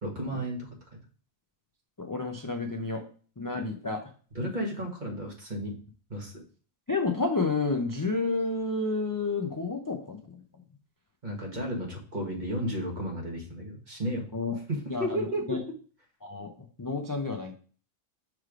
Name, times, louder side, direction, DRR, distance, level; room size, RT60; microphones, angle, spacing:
voice 1, 0.0-0.7 4.3-5.7 6.1-6.3 11.2-14.2 14.7-15.4, equal, 35° right, 0 dB, 1.6 m, -33 dB
voice 2, 2.0-3.0 3.4-4.0 6.9-10.4 14.3-14.6 14.9-15.2 15.5-15.6 16.2-16.5 16.8-17.6, left 3 dB, 35° left, 2 dB, 0.3 m, -30 dB
6.2 x 3.3 x 4.9 m, 0.40 s
omnidirectional pair, 1.4 m